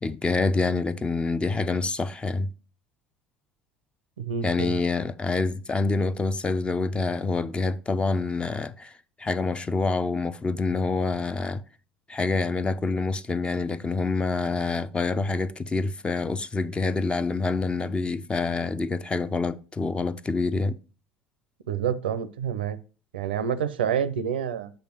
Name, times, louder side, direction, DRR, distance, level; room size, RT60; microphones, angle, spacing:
voice 1, 0.0-2.5 4.4-8.9 9.2-11.6 12.1-20.8, left 3 dB, 20° left, 0.5 m, -26 dB
voice 2, 4.2-4.7 21.7-22.8 23.1-24.7, right 8 dB, 80° right, 0.5 m, -28 dB
7.9 x 3.4 x 5.9 m
hypercardioid pair, 65°, 5 cm